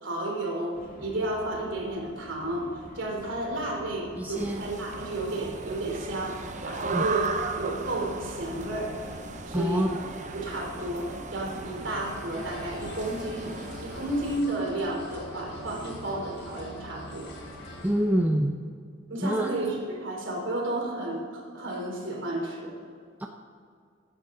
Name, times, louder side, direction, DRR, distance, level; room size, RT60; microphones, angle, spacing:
voice 1, 0.0-2.7 2.9-9.0 9.4-9.9 10.3-13.6 13.8-17.3 19.1-22.8, right 1 dB, 75° right, 0 dB, 3.3 m, -32 dB
sound 1, 0.7-18.2, equal, 50° left, 2.2 m, -47 dB
voice 2, 4.2-4.6 6.9-7.0 9.5-9.9 17.8-18.6 19.2-19.5 23.2-23.3, right 1 dB, 10° right, 3 dB, 0.6 m, -25 dB
sound 2, 4.3-14.4, right 4 dB, 40° right, 0.7 m, -37 dB
sound 3, 12.3-17.9, left 1 dB, 65° left, 3.4 m, -44 dB
16.0 x 10.5 x 3.8 m, 2.2 s
head